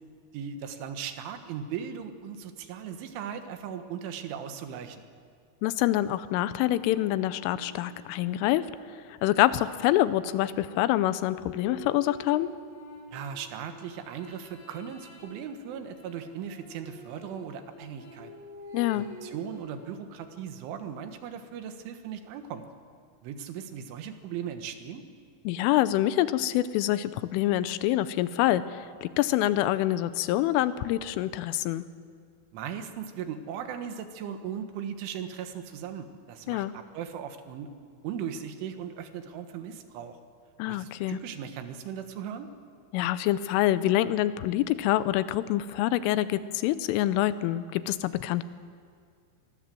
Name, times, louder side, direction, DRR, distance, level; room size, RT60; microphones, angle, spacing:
voice 1, 0.3-5.0 13.1-18.3 18.9-22.7 23.2-25.0 32.5-37.7 38.0-40.2 40.7-42.5, right 8 dB, 80° right, 8 dB, 3.8 m, -38 dB
voice 2, 5.6-8.7 9.1-12.5 18.7-19.1 25.4-31.8 36.5-36.7 40.6-41.2 42.9-48.4, left 14 dB, 90° left, 14 dB, 3.4 m, -26 dB
sound 1, 6.6-10.1 11.1-20.7, left 3 dB, 50° left, 5.1 m, -48 dB
26.5 x 21.5 x 7.7 m, 2.1 s
omnidirectional pair, 5.6 m